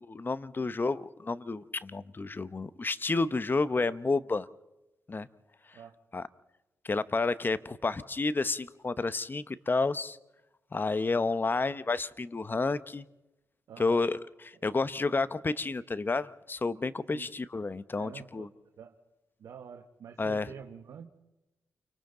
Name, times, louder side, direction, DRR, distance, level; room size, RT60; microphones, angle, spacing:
voice 1, 0.0-4.5 5.1-5.3 6.1-6.2 6.8-10.2 10.7-13.0 13.8-14.2 14.4-18.5 20.2-20.5, left 3 dB, 35° left, 1.0 m, -30 dB
voice 2, 13.7-14.0 17.1-17.3 18.0-19.0 19.4-21.1, right 7 dB, 75° right, 1.2 m, -47 dB
29.5 x 24.0 x 3.9 m
supercardioid pair, 40°, 6 cm